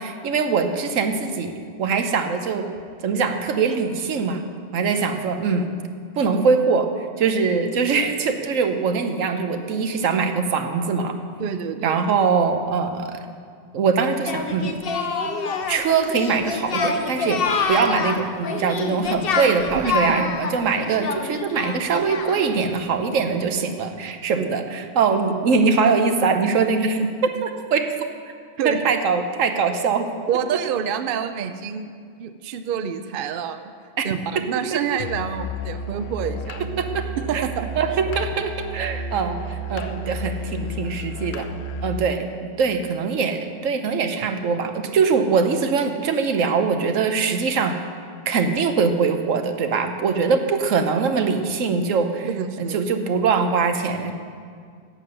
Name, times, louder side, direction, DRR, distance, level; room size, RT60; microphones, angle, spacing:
voice 1, 0.0-1.5 1.8-2.6 3.0-4.4 4.7-5.7 6.2-6.9 7.2-11.2 11.8-13.2 13.7-14.8 15.7-17.4 17.7-27.8 28.6-30.1 34.0-34.1 34.7-34.8 36.8-37.1 37.3-37.4 37.8-41.5 41.8-47.8 48.3-52.3 52.6-54.1, right 5 dB, 85° right, 6 dB, 1.2 m, -22 dB
voice 2, 11.4-12.0 19.7-20.2 24.3-24.5 28.6-28.8 30.3-31.9 32.2-33.7 34.0-36.7 37.3-38.0 52.2-52.8, right 7 dB, 55° right, 10 dB, 0.6 m, -27 dB
Singing, 14.3-22.6, left 4 dB, 55° left, 0.9 m, -26 dB
Musical instrument, 35.0-42.1, equal, 75° left, 1.0 m, -32 dB
11.5 x 7.7 x 6.7 m, 2.1 s
omnidirectional pair, 1.3 m